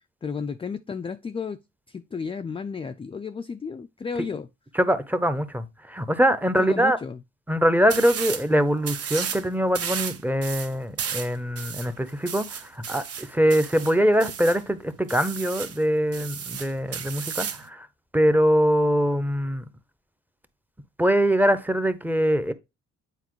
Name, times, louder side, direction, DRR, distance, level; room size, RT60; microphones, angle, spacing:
voice 1, 0.2-1.6 1.9-4.5 6.6-7.2, left 5 dB, 20° left, 0.3 m, -33 dB
voice 2, 4.7-7.0 7.5-17.9 18.1-19.6 21.0-22.5, equal, 5° right, 0.7 m, -23 dB
sound 1, 7.9-8.5 8.8-9.4 9.7-14.6 15.1-15.8 16.1-17.7, right 7 dB, 50° right, 0.9 m, -33 dB
8.2 x 4.3 x 3.0 m
cardioid pair, 90°, 30 cm